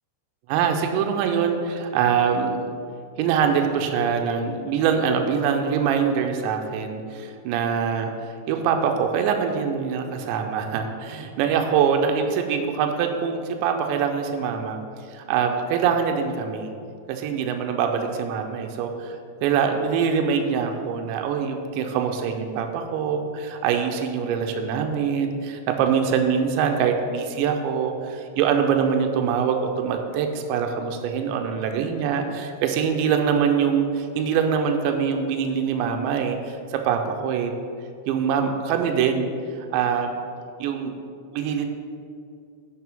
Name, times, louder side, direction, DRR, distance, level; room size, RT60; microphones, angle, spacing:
voice 1, 0.5-2.7 3.2-14.8 15.1-16.7 17.1-37.5 38.1-39.3 39.6-40.1 40.6-40.9 41.3-41.7, right 7 dB, 85° right, 4 dB, 2.8 m, -24 dB
10.5 x 6.6 x 3.6 m, 2.4 s
omnidirectional pair, 5.4 m